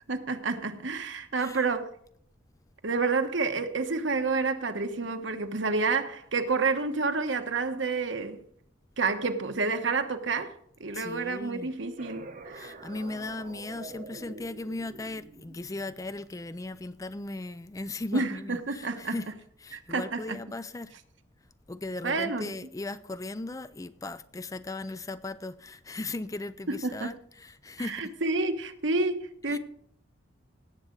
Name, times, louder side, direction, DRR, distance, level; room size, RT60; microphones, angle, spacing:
voice 1, 0.1-1.9 2.8-8.4 9.0-10.5 10.8-12.7 18.1-19.2 19.7-20.4 22.0-22.5 26.8-27.1 27.8-29.6, right 4 dB, 70° right, 1.2 m, -29 dB
voice 2, 10.9-11.7 12.5-19.3 19.6-20.9 21.7-28.1 29.5-29.6, left 2 dB, 15° left, 0.4 m, -37 dB
sound 1, 12.0-17.3, right 3 dB, 40° right, 0.9 m, -47 dB
18.0 x 7.7 x 3.9 m
head